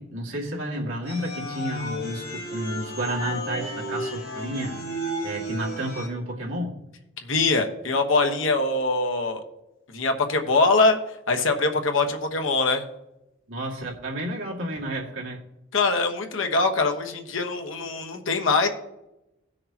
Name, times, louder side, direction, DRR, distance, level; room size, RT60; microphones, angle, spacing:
voice 1, 0.0-4.7 5.2-6.8 13.5-15.4, right 1 dB, 80° right, -2 dB, 2.2 m, -31 dB
sound 1, 1.1-6.1, equal, 50° left, 2.9 m, -33 dB
voice 2, 7.3-9.4 9.9-11.0 11.3-12.8 15.7-18.7, left 3 dB, 80° left, 4 dB, 1.2 m, -23 dB
17.5 x 6.5 x 2.9 m, 0.91 s
head